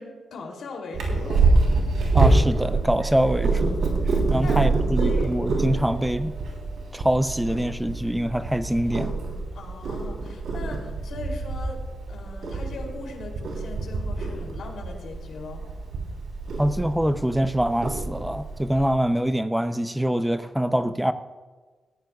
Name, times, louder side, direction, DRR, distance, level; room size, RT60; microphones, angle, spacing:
voice 1, 0.0-1.5 4.4-4.6 5.0-5.3 9.5-15.6, left 3 dB, 85° left, 2.8 m, -39 dB
Purr, 0.9-18.9, right 3 dB, 80° right, 3.4 m, -26 dB
voice 2, 2.1-3.7 4.1-6.3 6.9-9.2 16.6-21.1, right 1 dB, 5° right, 0.5 m, -24 dB
18.5 x 14.0 x 2.3 m
wide cardioid pair, 140°, 0 cm